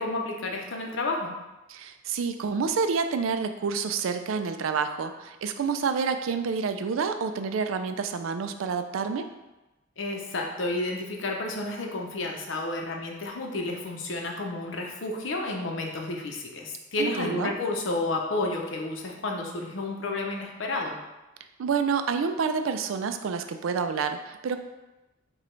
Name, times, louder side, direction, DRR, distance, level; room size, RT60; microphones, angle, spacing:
voice 1, 0.0-1.3 10.0-21.0, left 2 dB, 65° left, 1 dB, 0.7 m, -31 dB
voice 2, 1.7-9.3 17.0-17.5 21.6-24.6, right 5 dB, 80° right, 8 dB, 0.4 m, -28 dB
4.9 x 2.3 x 4.4 m, 1.0 s
head